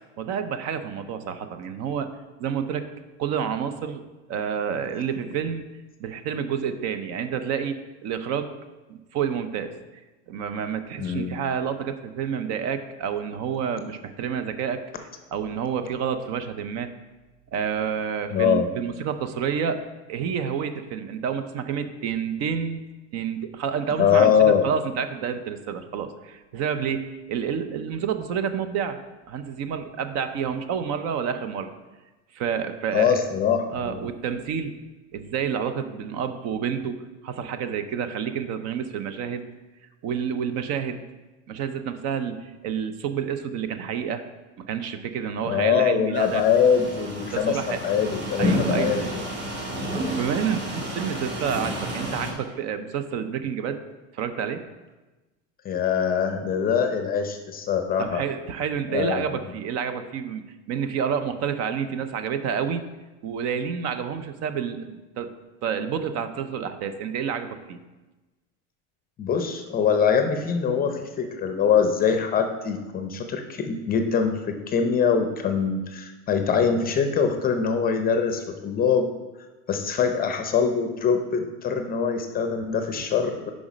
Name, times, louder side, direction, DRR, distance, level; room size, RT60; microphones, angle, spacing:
voice 1, 0.2-2.1 2.4-2.9 3.2-4.0 4.3-5.7 6.0-8.5 8.9-9.7 10.3-14.8 15.3-16.9 17.5-19.8 20.1-22.8 23.1-29.0 29.3-31.7 32.3-33.1 33.7-34.8 35.1-39.4 40.0-41.0 41.5-44.2 44.6-46.4 47.3-47.8 48.4-49.1 50.1-53.8 54.1-54.6 58.0-60.4 60.7-62.8 63.2-65.3 65.6-67.8, right 7 dB, 45° right, 10 dB, 0.7 m, -29 dB
voice 2, 11.0-11.4 18.3-18.7 24.0-24.6 32.9-34.1 45.4-47.6 47.8-49.2 55.6-58.2 58.9-59.3 69.2-79.1 79.7-83.5, left 7 dB, 25° left, 6 dB, 0.6 m, -23 dB
sound 1, 46.1-52.3, equal, 30° right, 1.9 m, -30 dB
7.0 x 5.2 x 5.1 m, 1.1 s
supercardioid pair, 125°, 36 cm